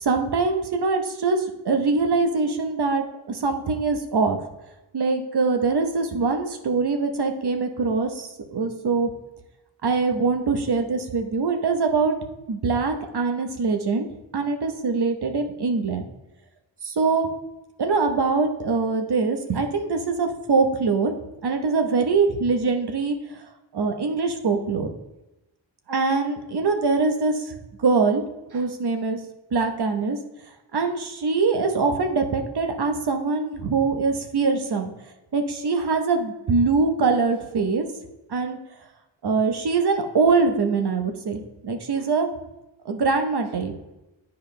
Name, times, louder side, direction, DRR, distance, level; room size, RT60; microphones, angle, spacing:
voice 1, 0.0-4.4 4.9-9.1 9.8-12.1 12.5-14.1 14.3-16.0 16.8-17.3 17.8-21.1 21.4-23.2 23.7-24.9 25.9-27.5 27.8-28.2 28.5-29.2 29.5-30.2 30.7-34.9 35.3-37.9 38.3-38.6 39.2-42.3 42.8-43.7, right 4 dB, 60° right, 5 dB, 1.0 m, -23 dB
10.5 x 4.6 x 3.2 m, 0.98 s
wide cardioid pair, 140°, 46 cm